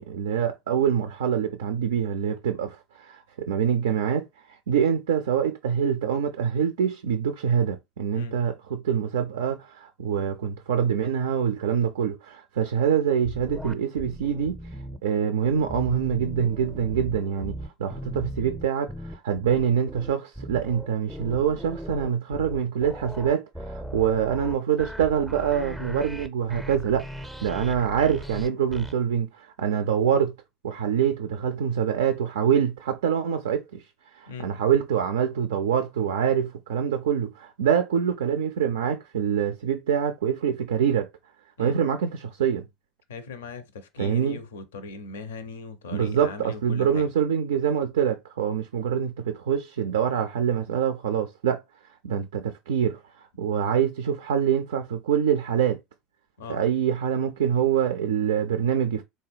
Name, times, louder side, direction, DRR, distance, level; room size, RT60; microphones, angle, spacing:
voice 1, 0.0-4.3 4.7-14.5 15.0-17.5 17.8-27.1 27.4-30.3 30.6-33.8 34.1-41.1 41.6-42.7 44.0-44.4 45.9-51.6 52.0-53.0 53.4-55.8 56.5-59.0, right 8 dB, 70° right, 0.3 m, -25 dB
sound 1, 13.2-15.0 15.4-28.9, equal, ahead, 0.5 m, -38 dB
voice 2, 43.1-47.1 56.4-56.6, left 4 dB, 70° left, 0.5 m, -39 dB
3.7 x 2.2 x 3.3 m
figure-of-eight pair, 70°, 0 cm